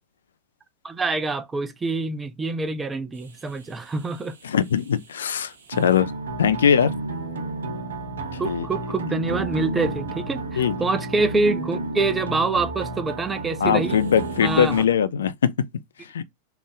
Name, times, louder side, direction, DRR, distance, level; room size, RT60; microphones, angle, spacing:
voice 1, 0.8-4.3 8.4-14.0 14.4-14.8, right 3 dB, 15° right, 0.4 m, -26 dB
sound 1, 3.2-14.9, right 2 dB, 65° right, 0.7 m, -32 dB
voice 2, 4.4-6.1 6.4-6.9 8.3-8.7 10.6-10.7 13.6-15.5 16.1-16.2, left 8 dB, 65° left, 0.3 m, -21 dB
3.4 x 2.5 x 3.4 m
figure-of-eight pair, 90°, 0 cm